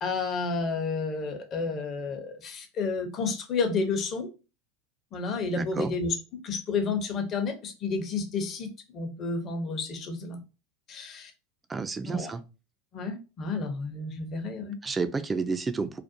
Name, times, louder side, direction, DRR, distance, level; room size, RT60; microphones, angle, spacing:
voice 1, 0.0-4.3 5.1-6.1 6.4-10.4 10.9-11.3 12.0-12.3 12.9-14.8, left 4 dB, 40° left, 6 dB, 0.7 m, -31 dB
voice 2, 5.6-5.9 11.7-12.4 14.8-16.0, right 4 dB, 20° right, 10 dB, 0.3 m, -30 dB
2.5 x 2.0 x 2.6 m, 0.31 s
hypercardioid pair, 105°, 0 cm